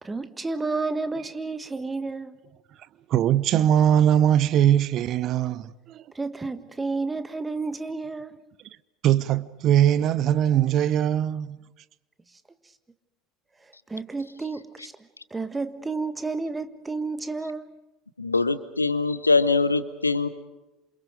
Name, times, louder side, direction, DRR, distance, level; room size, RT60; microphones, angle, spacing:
voice 1, 0.0-2.4 6.1-8.4 13.9-14.9 15.3-17.8, right 3 dB, 15° right, 1.7 m, -31 dB
voice 2, 3.1-6.0 9.0-11.6, right 10 dB, 45° right, 0.8 m, -21 dB
voice 3, 18.2-20.3, left 3 dB, 85° left, 1.1 m, -23 dB
28.5 x 27.5 x 5.2 m
figure-of-eight pair, 70°, 0 cm